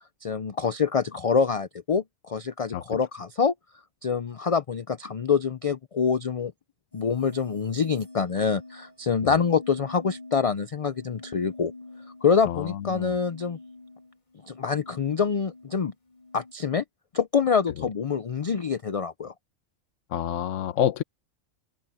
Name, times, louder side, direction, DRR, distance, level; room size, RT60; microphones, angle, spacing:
voice 1, 0.2-3.5 4.0-6.5 6.9-11.7 12.2-13.6 14.5-15.9 16.3-16.8 17.1-19.3, left 6 dB, 55° left, 0.4 m, -26 dB
sound 1, 6.9-16.5, left 2 dB, 35° left, 3.0 m, -46 dB
voice 2, 12.5-13.1 17.8-17.9 20.1-21.0, left 10 dB, 80° left, 1.1 m, -28 dB
omnidirectional pair, 1.3 m